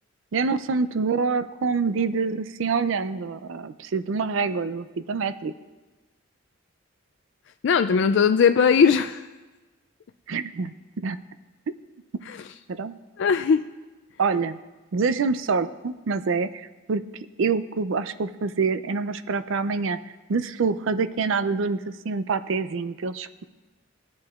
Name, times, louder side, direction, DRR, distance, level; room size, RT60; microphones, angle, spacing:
voice 1, 0.3-5.5 10.3-11.2 12.7-12.9 14.2-14.6 14.9-17.0 17.4-20.0 20.3-23.4, right 4 dB, 70° right, 12 dB, 0.4 m, -26 dB
voice 2, 7.6-9.2 13.2-13.6, left 6 dB, 60° left, 9 dB, 0.3 m, -19 dB
18.5 x 10.5 x 2.4 m, 1.2 s
head